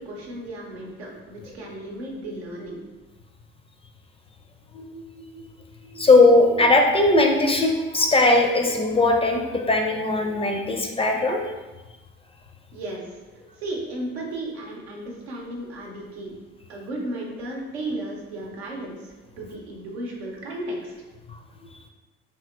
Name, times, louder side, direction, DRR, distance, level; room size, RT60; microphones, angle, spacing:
voice 1, 0.1-2.8 12.7-13.2 13.6-16.3 16.7-20.9, right 1 dB, 85° right, -2 dB, 0.7 m, -34 dB
voice 2, 4.7-5.2 5.9-11.4, left 2 dB, 20° left, 2 dB, 0.4 m, -19 dB
2.9 x 2.9 x 2.3 m, 1.2 s
hypercardioid pair, 60°, 31 cm